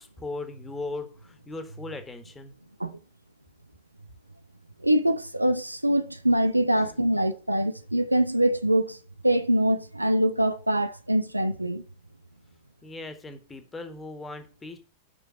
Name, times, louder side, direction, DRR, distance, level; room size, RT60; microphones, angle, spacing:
voice 1, 0.0-2.5 6.8-6.9 12.8-14.8, left 3 dB, 15° left, 1.7 m, -38 dB
voice 2, 4.8-9.0 9.2-11.8, right 1 dB, 85° right, 0.7 m, -24 dB
7.5 x 6.2 x 7.8 m
figure-of-eight pair, 90°, 0 cm